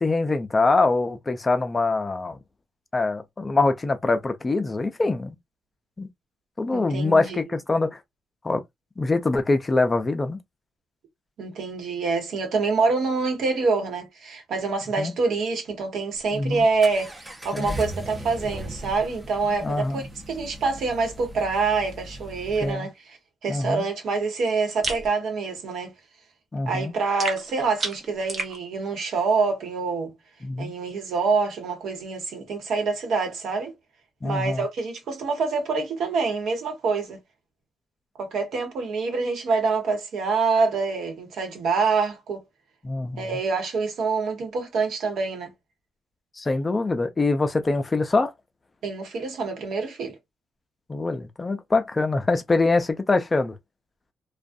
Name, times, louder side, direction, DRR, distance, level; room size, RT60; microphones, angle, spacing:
voice 1, 0.0-2.4 2.9-5.4 6.0-6.1 6.6-8.0 8.4-8.6 9.0-10.4 15.0-15.1 16.3-16.7 17.5-17.8 19.6-20.0 22.6-22.9 23.5-23.8 26.5-26.9 30.4-30.7 34.2-34.6 42.8-43.2 46.4-48.3 50.9-53.5, left 3 dB, 25° left, 0.5 m, -24 dB
voice 2, 6.7-7.4 11.4-23.2 23.4-25.9 26.7-30.1 30.6-33.7 34.2-37.2 38.2-42.4 43.2-45.5 48.8-50.1, right 4 dB, 70° right, 1.1 m, -26 dB
Accelerating revving vroom, 16.1-22.7, equal, 15° right, 0.6 m, -38 dB
sound 1, 24.8-25.1 27.2-28.6, right 3 dB, 40° right, 0.9 m, -30 dB
2.4 x 2.3 x 2.6 m
cardioid pair, 90°, 0 cm